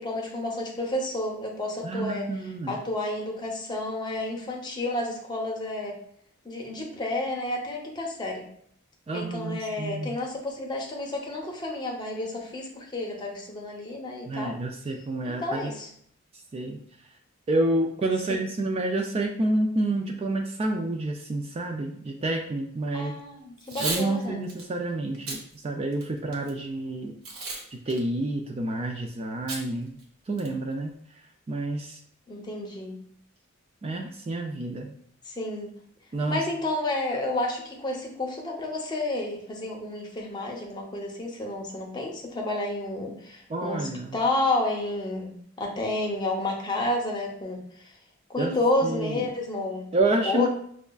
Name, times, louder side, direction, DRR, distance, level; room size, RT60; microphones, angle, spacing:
voice 1, 0.0-2.3 2.7-5.9 6.4-8.5 9.1-14.6 15.2-15.9 22.9-24.4 32.3-33.0 35.3-35.7 36.3-47.9 48.3-49.9 50.3-50.5, left 2 dB, 20° left, 0 dB, 0.7 m, -30 dB
voice 2, 1.8-2.8 9.1-10.2 14.3-15.7 16.5-16.8 17.5-23.2 23.8-27.1 27.7-30.0 30.3-30.9 31.5-32.0 33.8-34.9 36.1-36.4 43.5-44.1 48.4-48.5 48.8-49.3 49.9-50.5, right 2 dB, 30° right, 3 dB, 0.3 m, -29 dB
Packing tape duct tape / Tearing, 23.6-24.0 24.5-24.6 25.1-25.4 25.9-26.5 27.2-27.6 27.9-28.0 29.5-29.6 30.0-30.1 30.4-30.7, right 2 dB, 80° right, 1.0 m, -33 dB
6.2 x 2.3 x 2.3 m, 0.65 s
head